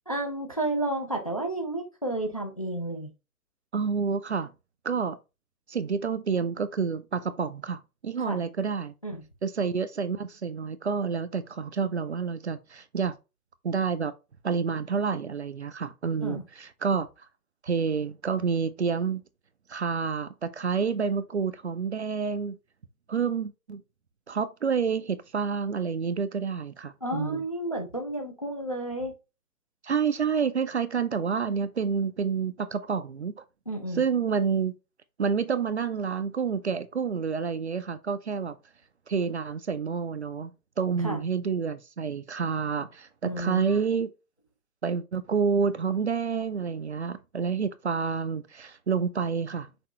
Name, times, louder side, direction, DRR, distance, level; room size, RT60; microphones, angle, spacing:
voice 1, 0.1-3.1 8.2-8.4 9.0-9.2 16.2-16.4 27.0-29.1 33.7-34.0 41.0-41.2 43.2-43.8, right 1 dB, 25° left, 0.4 m, -31 dB
voice 2, 3.7-4.5 4.8-5.2 5.7-8.9 9.4-13.2 13.6-14.1 14.4-17.1 17.6-19.2 19.7-22.6 23.1-23.8 24.3-27.4 29.8-33.4 33.9-34.7 35.2-38.6 39.1-44.1 44.8-49.7, right 6 dB, 50° right, 0.4 m, -28 dB
5.9 x 2.8 x 3.0 m
figure-of-eight pair, 135°, 45 cm